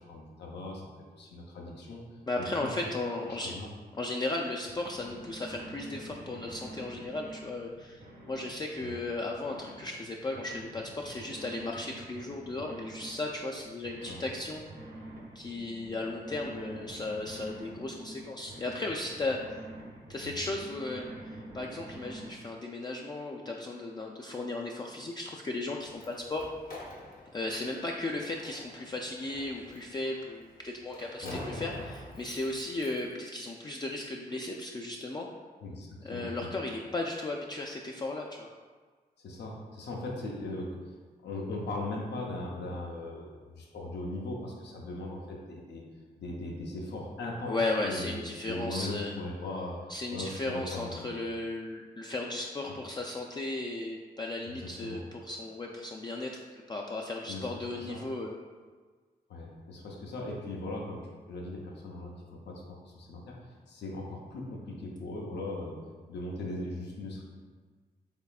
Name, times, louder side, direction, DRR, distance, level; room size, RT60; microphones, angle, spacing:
voice 1, 0.0-2.7 3.3-3.7 8.8-9.0 14.0-14.2 20.2-20.3 31.2-31.4 35.6-36.5 39.2-40.9 41.2-45.8 46.2-51.1 52.7-52.8 54.5-55.0 57.3-58.0 59.3-63.4 63.7-65.8 66.1-67.2, left 2 dB, 80° left, -1 dB, 0.6 m, -39 dB
voice 2, 2.3-3.5 3.9-14.6 15.4-19.4 20.1-26.5 27.3-35.3 36.0-38.5 47.5-49.2 49.9-58.4, left 2 dB, 25° left, -1 dB, 0.3 m, -35 dB
sound 1, 4.7-22.3, right 1 dB, 60° right, 0.8 m, -47 dB
Slam, 25.7-33.1, left 1 dB, 55° left, 1.0 m, -46 dB
3.5 x 3.3 x 2.4 m, 1.5 s
supercardioid pair, 45°, 18 cm